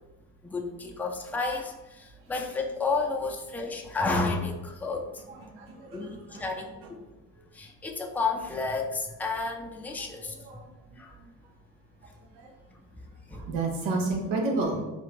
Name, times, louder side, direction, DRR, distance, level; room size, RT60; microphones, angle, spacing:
voice 1, 0.4-5.0 5.9-6.7 7.6-10.3 11.0-11.1 13.3-13.4 14.1-14.2, left 3 dB, 5° left, 1 dB, 0.5 m, -31 dB
voice 2, 5.3-6.1 6.3-6.5 10.4-10.6 12.3-12.5 13.3-14.8, right 3 dB, 80° right, 0 dB, 0.9 m, -30 dB
3.5 x 2.4 x 3.2 m, 1.1 s
hypercardioid pair, 55°, 45 cm